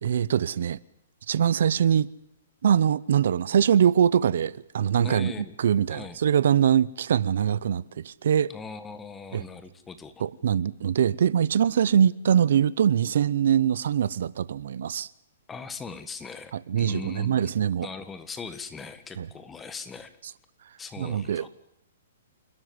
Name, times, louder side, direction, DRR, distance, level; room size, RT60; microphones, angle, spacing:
voice 1, 0.0-0.8 1.3-2.1 2.6-5.3 5.6-8.5 9.3-9.4 10.2-15.1 16.5-17.9 19.2-19.3 21.0-21.5, right 8 dB, 65° right, 0.8 m, -23 dB
voice 2, 5.0-5.5 5.9-6.2 8.5-10.2 15.5-17.3 17.8-20.1 20.8-21.5, left 5 dB, 10° left, 1.6 m, -40 dB
28.5 x 13.0 x 9.7 m
hypercardioid pair, 165°, 0 cm